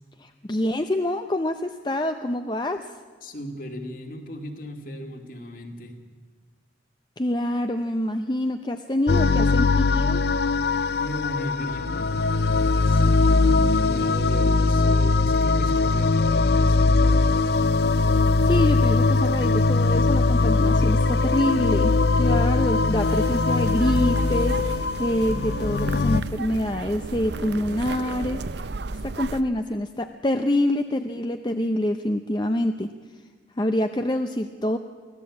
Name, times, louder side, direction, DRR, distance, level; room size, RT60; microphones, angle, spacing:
voice 1, 0.2-2.9 7.2-10.2 18.4-28.7 29.0-32.9 33.6-34.8, left 1 dB, 25° left, 7 dB, 0.7 m, -26 dB
voice 2, 3.2-6.0 10.9-12.1 12.9-17.5, left 1 dB, 50° left, 3 dB, 2.6 m, -37 dB
sound 1, 9.1-26.2, left 3 dB, 65° left, 0.6 m, -21 dB
sound 2, 23.0-29.4, right 3 dB, 75° right, 0.7 m, -34 dB
24.0 x 16.0 x 8.6 m, 1.5 s
head